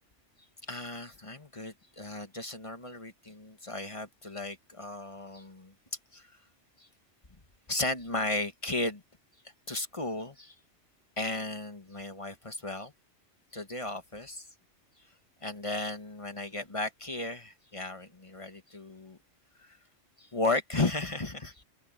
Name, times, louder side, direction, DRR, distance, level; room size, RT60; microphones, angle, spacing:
voice 1, 0.7-5.7 6.1-6.3 7.7-9.0 9.7-10.5 11.2-12.9 13.5-14.5 15.4-19.2 20.2-21.6, left 2 dB, 25° left, 1.5 m, -35 dB
open air
omnidirectional pair, 1.2 m